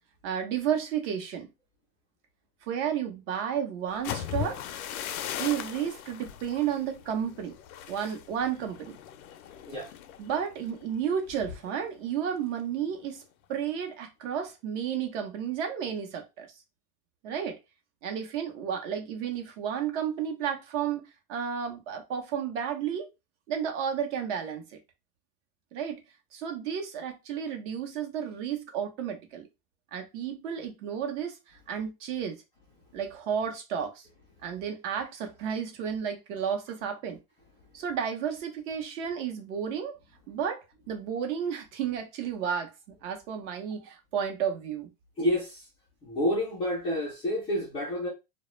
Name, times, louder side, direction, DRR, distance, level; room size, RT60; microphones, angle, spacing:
voice 1, 0.2-1.5 2.7-4.6 5.4-7.6 7.9-9.0 10.2-13.2 13.5-16.5 17.2-17.6 18.0-21.0 21.3-23.1 23.5-24.8 25.7-26.0 26.3-29.5 29.9-32.4 32.9-34.1 34.4-37.2 37.7-40.0 40.3-44.9, right 8 dB, 55° right, 0.8 m, -32 dB
sound 1, 3.9-11.7 12.1-12.4 12.8-13.2, left 10 dB, 70° left, 0.5 m, -39 dB
voice 2, 45.2-45.7 46.0-48.1, left 1 dB, 15° left, 0.3 m, -29 dB
2.2 x 2.0 x 3.0 m
supercardioid pair, 140°, 44 cm